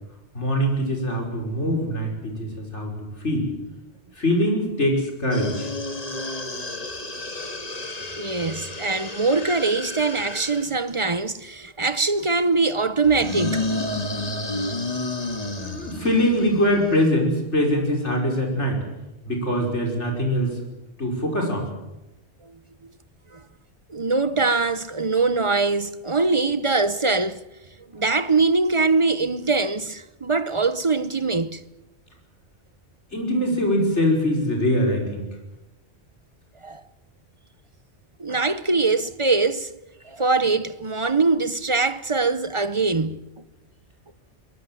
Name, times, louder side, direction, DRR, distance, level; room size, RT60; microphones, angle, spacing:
voice 1, 0.3-2.9 3.2-3.5 4.2-5.7 15.6-18.8 19.2-20.6 21.0-21.7 33.1-35.2, equal, 80° left, 5.8 m, -23 dB
sound 1, 5.3-10.7 13.0-17.1, left 2 dB, 35° left, 2.1 m, -31 dB
voice 2, 8.2-13.7 23.3-23.4 23.9-27.4 27.9-31.6 36.6-36.8 38.2-39.7 40.0-43.3, right 3 dB, 30° right, 0.8 m, -22 dB
23.0 x 21.0 x 7.7 m
omnidirectional pair, 1.2 m